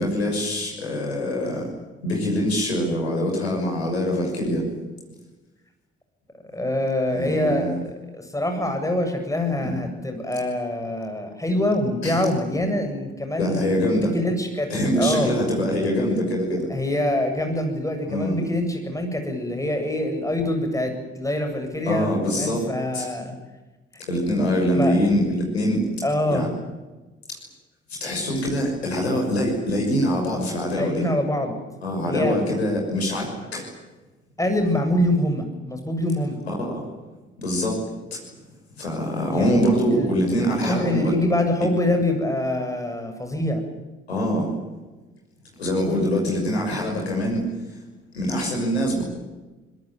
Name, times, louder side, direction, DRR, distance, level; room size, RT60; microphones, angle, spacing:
voice 1, 0.0-1.6 2.0-4.6 7.1-7.8 9.6-9.7 12.0-12.2 13.4-14.1 14.7-16.7 18.1-18.4 21.8-22.7 22.9-23.1 24.1-25.9 26.3-26.5 28.0-31.0 31.8-33.7 36.5-36.8 37.4-37.8 38.1-38.2 38.7-41.0 44.1-44.5 45.6-47.4 48.1-49.0, equal, 80° left, 0 dB, 6.2 m, -24 dB
voice 2, 6.5-15.3 16.7-23.3 24.7-25.0 26.0-26.5 30.8-31.6 32.1-32.5 34.4-36.4 39.3-43.7, left 1 dB, 10° left, 4 dB, 8.0 m, -25 dB
24.5 x 21.5 x 9.3 m, 1.2 s
figure-of-eight pair, 40°, 31 cm